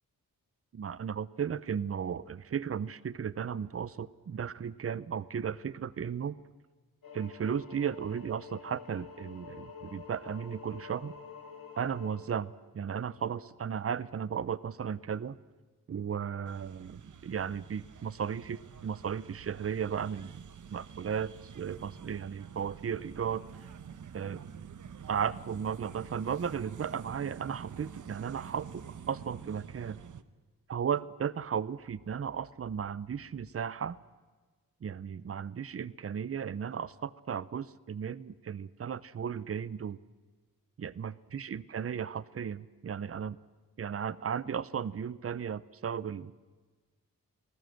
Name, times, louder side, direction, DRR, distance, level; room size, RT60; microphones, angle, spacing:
voice 1, 0.7-6.4 7.1-11.1 11.8-15.4 15.9-20.4 20.7-23.4 24.1-24.4 25.1-30.0 30.7-34.0 34.8-40.0 40.8-43.4 43.8-46.3, right 7 dB, 40° right, 18 dB, 0.7 m, -35 dB
sound 1, 7.0-12.2, left 6 dB, 80° left, 4.4 m, -48 dB
sound 2, 16.4-30.2, right 7 dB, 60° right, 1.1 m, -48 dB
29.5 x 19.5 x 7.8 m, 1.4 s
wide cardioid pair, 140°, 34 cm